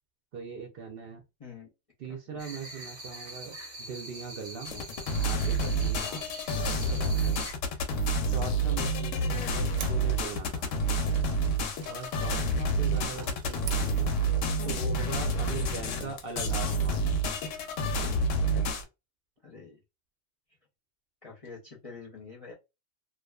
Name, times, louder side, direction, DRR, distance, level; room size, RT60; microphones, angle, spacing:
voice 1, 0.3-1.2 2.0-4.8 5.2-6.0 6.6-7.5 8.3-10.8 11.8-14.1 14.6-17.1, right 5 dB, 60° right, 0.6 m, -40 dB
voice 2, 2.1-2.4 5.9-6.2 13.1-13.3 19.4-19.8 21.2-22.5, left 4 dB, 40° left, 0.5 m, -46 dB
sound 1, 2.4-7.5, right 1 dB, 15° right, 0.7 m, -43 dB
sound 2, 4.6-18.8, right 2 dB, 85° left, 0.9 m, -28 dB
sound 3, 9.7-14.5, right 7 dB, 90° right, 0.9 m, -48 dB
2.5 x 2.3 x 2.2 m
omnidirectional pair, 1.3 m